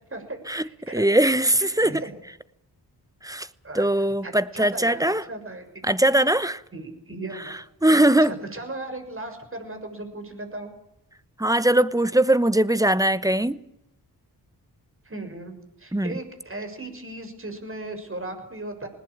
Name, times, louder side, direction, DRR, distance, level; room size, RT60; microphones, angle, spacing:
voice 1, 0.1-1.1 1.8-2.1 3.6-3.9 4.2-5.6 6.7-7.6 7.9-10.7 15.0-18.9, right 2 dB, 30° right, 6.7 m, -37 dB
voice 2, 0.9-2.0 3.2-3.5 3.7-5.2 5.8-6.6 7.8-8.3 11.4-13.6 15.9-16.1, right 1 dB, 10° right, 1.0 m, -20 dB
20.0 x 18.0 x 8.7 m
cardioid pair, 70°, 40 cm